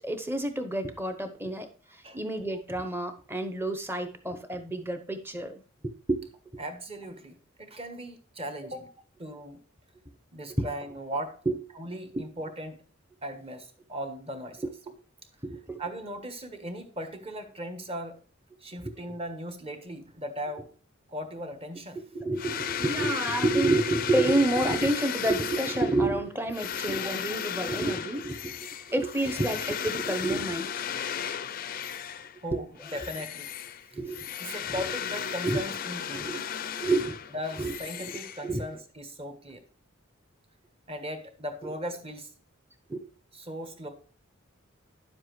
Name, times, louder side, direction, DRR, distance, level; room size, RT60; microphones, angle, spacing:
voice 1, 0.0-6.3 10.6-10.7 11.5-11.6 12.1-12.2 14.6-14.7 15.4-15.8 18.8-18.9 22.1-30.8 32.5-32.6 33.9-34.2 34.8-34.9 35.4-35.6 36.1-36.4 36.8-37.2 37.6-38.6 42.9-43.1, right 2 dB, 10° right, 8 dB, 0.8 m, -29 dB
voice 2, 6.6-8.9 9.2-9.6 10.3-11.4 11.7-12.8 13.2-14.6 15.8-18.2 18.6-20.7 21.1-22.0 32.4-33.5 34.4-36.5 37.3-39.6 40.9-42.3 43.3-43.9, equal, 30° right, 7 dB, 1.3 m, -38 dB
sound 1, 22.4-32.4 32.8-38.8, left 8 dB, 45° left, 0.4 m, -35 dB
10.5 x 7.3 x 3.2 m, 0.41 s
head